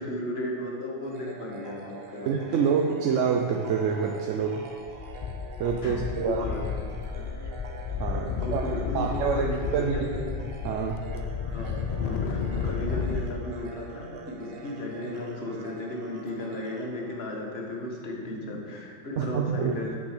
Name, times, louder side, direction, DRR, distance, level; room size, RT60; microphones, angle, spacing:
voice 1, 0.0-2.6 5.8-7.4 8.4-10.3 11.5-20.0, left 1 dB, 60° left, -1 dB, 1.6 m, -35 dB
sound 1, 1.0-17.8, right 3 dB, 55° right, 1.0 m, -45 dB
voice 2, 2.2-4.6 5.6-6.4 8.0-8.6 8.9-10.1 10.6-11.1 19.2-19.7, right 6 dB, 85° right, 2 dB, 1.0 m, -27 dB
sound 2, 4.4-4.6 4.9-13.3, left 6 dB, 75° left, 0.3 m, -32 dB
8.7 x 5.9 x 5.0 m, 2.3 s
omnidirectional pair, 1.2 m